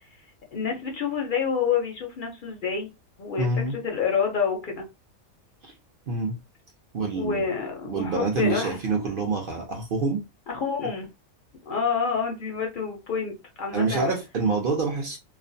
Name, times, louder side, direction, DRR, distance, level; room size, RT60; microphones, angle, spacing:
voice 1, 0.5-2.9 3.2-4.8 7.1-8.8 10.5-11.1 11.7-14.1, left 6 dB, 60° left, 0.5 m, -28 dB
voice 2, 3.4-3.8 5.6-5.7 6.1-6.3 6.9-7.4 7.8-10.2 13.7-15.2, right 3 dB, 60° right, 0.5 m, -26 dB
2.4 x 2.1 x 2.6 m
omnidirectional pair, 1.5 m